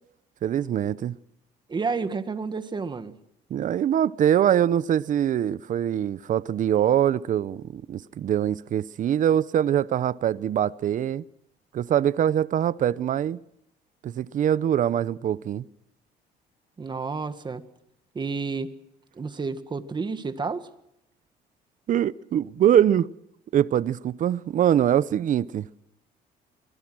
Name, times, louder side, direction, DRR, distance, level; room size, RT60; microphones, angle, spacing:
voice 1, 0.4-1.1 3.5-11.2 11.7-13.4 14.0-15.6 21.9-23.1 23.5-25.7, right 10 dB, 50° right, 0.8 m, -23 dB
voice 2, 1.7-3.2 16.8-17.6 18.1-18.8 19.2-20.7, right 4 dB, 25° right, 1.8 m, -30 dB
25.5 x 21.0 x 6.3 m
cardioid pair, 110°, 17 cm